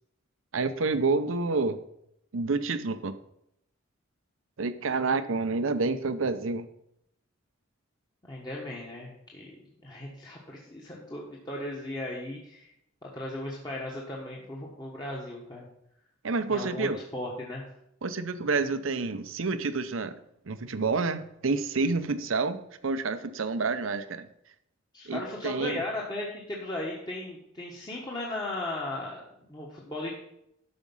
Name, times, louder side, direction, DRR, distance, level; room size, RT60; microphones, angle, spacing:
voice 1, 0.5-1.8 2.3-3.1 4.6-6.7 16.2-17.0 18.0-20.1 20.5-24.3 25.1-25.8, right 3 dB, 70° right, 11 dB, 0.7 m, -28 dB
voice 2, 8.3-9.5 9.8-12.7 13.0-15.7 16.5-17.6 24.9-29.2 29.5-30.1, left 1 dB, 20° left, -3 dB, 1.3 m, -36 dB
12.5 x 5.2 x 5.4 m, 0.78 s
head